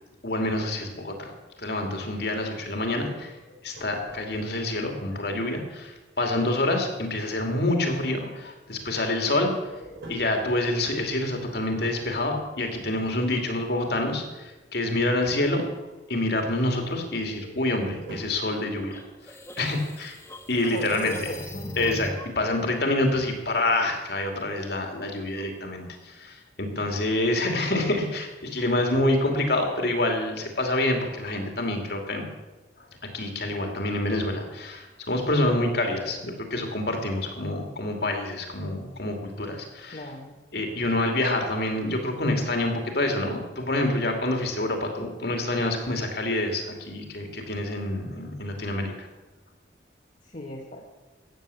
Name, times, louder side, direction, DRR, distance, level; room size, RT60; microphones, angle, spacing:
voice 1, 0.2-1.3 1.6-3.3 3.6-9.6 10.1-15.6 16.1-19.0 19.6-20.2 20.5-21.1 21.8-32.3 33.1-40.1 40.5-49.1, left 1 dB, 60° left, 3 dB, 2.6 m, -27 dB
sound 1, 3.5-4.7 9.2-12.8 17.3-18.5, right 1 dB, 85° right, 4.8 m, -46 dB
sound 2, 18.9-22.4, left 1 dB, 15° left, 1.2 m, -39 dB
voice 2, 20.7-21.8 39.9-40.4 50.2-50.9, equal, 45° left, 0 dB, 1.4 m, -36 dB
14.5 x 9.3 x 7.0 m, 1.2 s
head